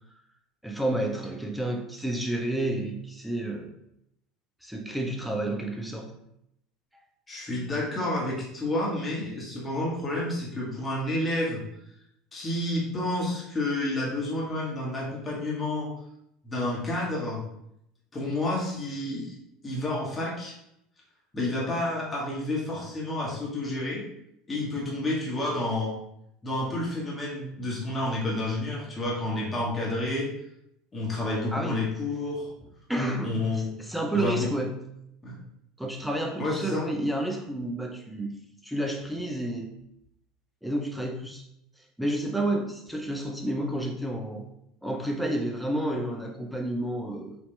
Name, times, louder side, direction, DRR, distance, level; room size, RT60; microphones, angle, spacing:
voice 1, 0.6-3.7 4.6-6.1 31.5-31.8 32.9-33.4 33.8-34.7 35.8-39.7 40.6-41.4 42.0-44.5 44.8-47.4, right 1 dB, ahead, 1 dB, 0.7 m, -30 dB
voice 2, 7.3-11.6 12.3-15.9 16.4-17.4 18.1-19.3 19.6-20.5 21.3-24.0 24.5-25.9 26.4-30.3 30.9-32.5 33.2-33.7 34.1-34.5 35.2-35.4 36.4-36.9, left 1 dB, 20° left, -5 dB, 1.4 m, -30 dB
4.2 x 2.8 x 3.3 m, 0.77 s
figure-of-eight pair, 70°, 0 cm